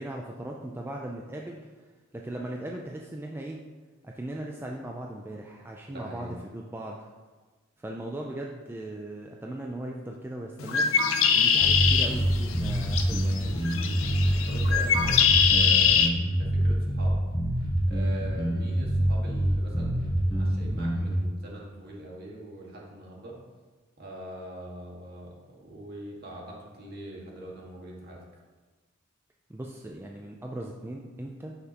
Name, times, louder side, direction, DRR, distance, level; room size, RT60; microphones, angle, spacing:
voice 1, 0.0-1.7 2.1-3.6 4.0-7.0 7.8-10.9 11.3-13.5 29.5-31.6, right 1 dB, 10° right, 0 dB, 0.4 m, -38 dB
voice 2, 5.9-6.4 14.5-17.2 17.9-23.4 24.0-28.2, right 1 dB, 50° right, -3 dB, 1.8 m, -42 dB
Bird, 10.6-16.1, left 7 dB, 70° left, 0.6 m, -24 dB
sound 1, 11.6-21.2, right 1 dB, 20° left, 1.1 m, -26 dB
9.5 x 5.8 x 2.9 m, 1.3 s
head